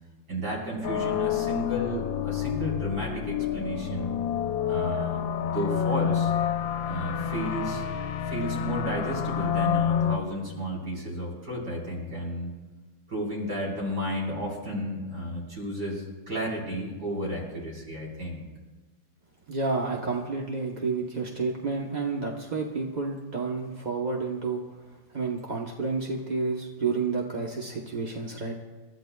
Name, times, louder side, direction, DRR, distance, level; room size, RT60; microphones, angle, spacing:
voice 1, 0.3-4.2 4.7-6.3 6.8-7.8 8.2-12.6 13.1-18.5, equal, 55° right, -4 dB, 4.7 m, -32 dB
sound 1, 0.8-10.2, left 9 dB, 80° left, 1.4 m, -28 dB
voice 2, 19.5-24.6 25.1-28.5, right 4 dB, 40° right, -1 dB, 0.6 m, -30 dB
28.0 x 13.0 x 2.3 m, 1.3 s
omnidirectional pair, 2.1 m